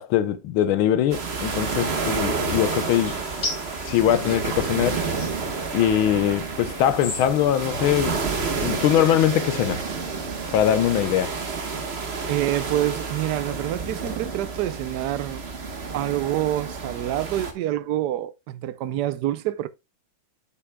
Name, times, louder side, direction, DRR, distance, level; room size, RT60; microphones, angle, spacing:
voice 1, 0.0-3.2 3.9-5.1 5.7-8.2 8.6-9.8 10.5-11.3, left 10 dB, 85° left, 1.6 m, -22 dB
sound 1, 1.1-17.5, right 4 dB, 35° right, 1.3 m, -30 dB
sound 2, 2.5-6.0 6.6-7.7, left 3 dB, 60° left, 2.5 m, -37 dB
voice 2, 12.3-15.4 15.9-19.7, right 13 dB, 70° right, 1.0 m, -27 dB
8.3 x 8.0 x 2.2 m
omnidirectional pair, 2.2 m